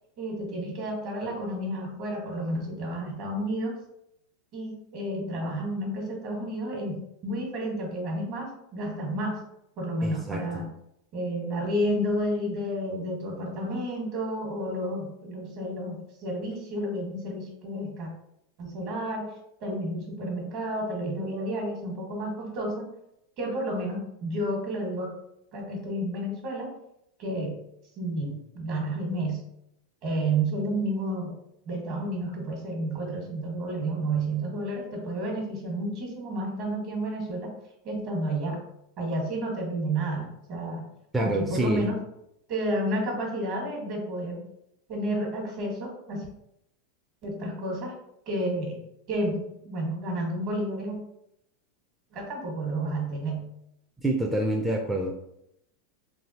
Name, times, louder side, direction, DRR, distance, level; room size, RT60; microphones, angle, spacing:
voice 1, 0.2-3.7 4.5-9.4 9.8-10.6 11.1-18.1 18.6-19.3 19.6-22.9 23.4-25.1 25.5-26.7 27.2-27.6 28.0-29.4 30.0-31.4 31.6-37.5 37.8-38.6 39.0-40.9 41.2-42.0 42.5-44.4 44.9-46.3 47.2-47.9 48.3-48.8 49.1-51.0 52.1-53.5, right 1 dB, 50° right, 1 dB, 1.3 m, -31 dB
voice 2, 10.0-10.6 41.1-41.8 54.0-55.1, right 1 dB, 10° right, 0 dB, 0.4 m, -27 dB
3.2 x 2.5 x 2.8 m, 0.79 s
supercardioid pair, 135°, 0 cm